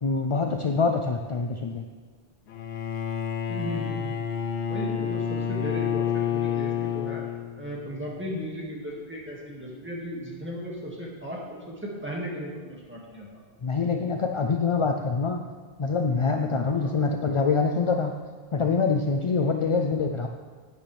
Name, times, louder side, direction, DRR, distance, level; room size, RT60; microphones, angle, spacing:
voice 1, 0.0-1.8 13.6-15.4 15.8-18.1 18.5-20.3, left 4 dB, 50° left, 4 dB, 0.4 m, -25 dB
Bowed string instrument, 2.5-7.8, left 8 dB, 75° left, 0.9 m, -29 dB
voice 2, 3.5-4.3 4.7-7.2 7.6-13.3 16.7-16.9 19.6-19.7, equal, 10° right, -4 dB, 2.0 m, -36 dB
11.5 x 9.4 x 3.4 m, 1.5 s
omnidirectional pair, 1.1 m